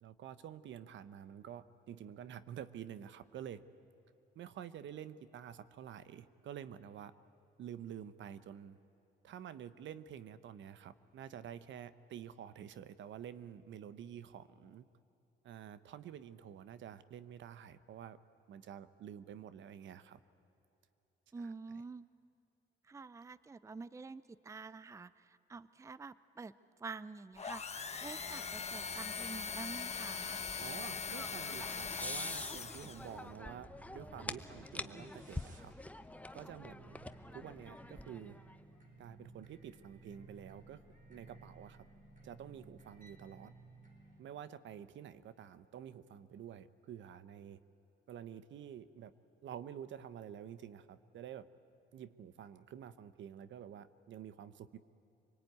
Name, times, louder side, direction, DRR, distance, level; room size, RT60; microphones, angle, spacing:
voice 1, 0.0-3.6 4.3-7.1 7.6-8.8 9.2-14.9 15.4-18.2 18.5-20.2 21.4-21.5 30.6-35.7 36.3-37.0 37.3-38.4 39.0-40.8 41.1-41.9 42.2-43.5 44.2-47.6 48.1-49.1 49.4-51.5 51.9-54.8, right 9 dB, 70° right, 14 dB, 1.0 m, -49 dB
voice 2, 21.3-22.0 22.9-26.5 26.8-30.4, right 4 dB, 15° right, 17 dB, 0.5 m, -48 dB
sound 1, 27.4-33.2, left 5 dB, 35° left, 1.1 m, -41 dB
sound 2, 28.3-44.2, right 2 dB, 40° right, 4.4 m, -59 dB
sound 3, 30.0-38.6, left 1 dB, 5° left, 0.9 m, -47 dB
26.0 x 19.5 x 9.4 m, 2.9 s
cardioid pair, 90°, 20 cm